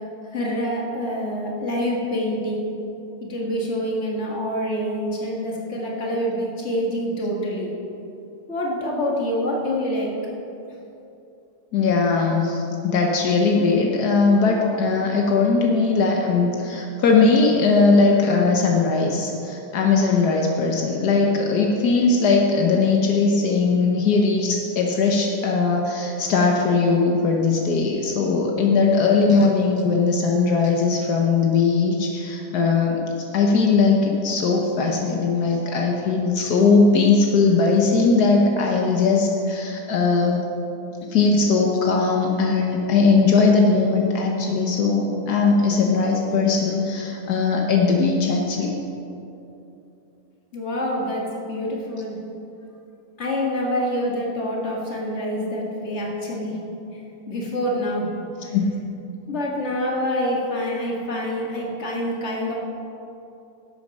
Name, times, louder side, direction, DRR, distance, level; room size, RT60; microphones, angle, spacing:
voice 1, 0.3-2.7 3.3-7.7 8.5-10.1 50.5-52.2 53.2-56.6 56.9-57.0 57.3-58.1 58.4-58.6 59.3-62.5, equal, 45° left, -2 dB, 2.0 m, -26 dB
voice 2, 11.7-40.4 41.1-48.7 58.5-58.7, left 4 dB, 80° left, 1 dB, 1.5 m, -19 dB
11.5 x 8.5 x 5.3 m, 2.8 s
omnidirectional pair, 1.7 m